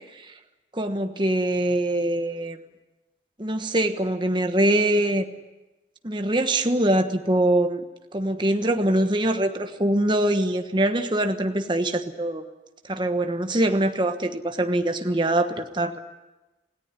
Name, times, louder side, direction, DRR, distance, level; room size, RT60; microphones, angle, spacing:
voice 1, 0.7-2.6 3.4-5.3 6.0-7.8 8.1-12.4 12.8-16.0, right 1 dB, 25° right, 6 dB, 1.3 m, -23 dB
27.5 x 17.5 x 9.7 m, 1.1 s
head